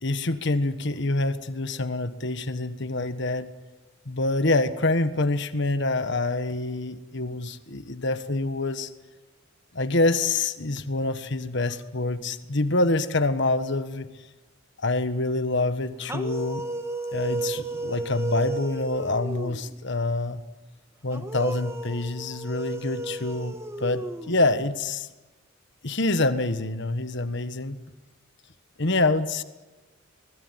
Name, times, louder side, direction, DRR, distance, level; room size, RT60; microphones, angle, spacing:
voice 1, 0.0-3.5 4.0-8.9 9.7-14.1 14.8-16.6 17.1-20.4 21.0-25.1 25.8-27.8 28.8-29.4, left 2 dB, 55° left, 11 dB, 1.4 m, -26 dB
sound 1, 16.0-19.8 21.1-24.7, right 2 dB, 15° right, 1.5 m, -34 dB
25.5 x 20.5 x 9.8 m, 1.2 s
head